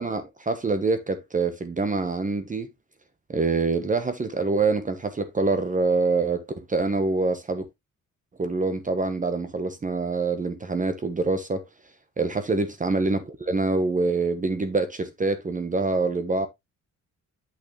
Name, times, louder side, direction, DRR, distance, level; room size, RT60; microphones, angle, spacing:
voice 1, 0.0-2.7 3.3-7.6 8.4-11.6 12.2-16.5, right 3 dB, 25° right, 1.0 m, -25 dB
8.5 x 6.1 x 3.0 m
cardioid pair, 130°, 31 cm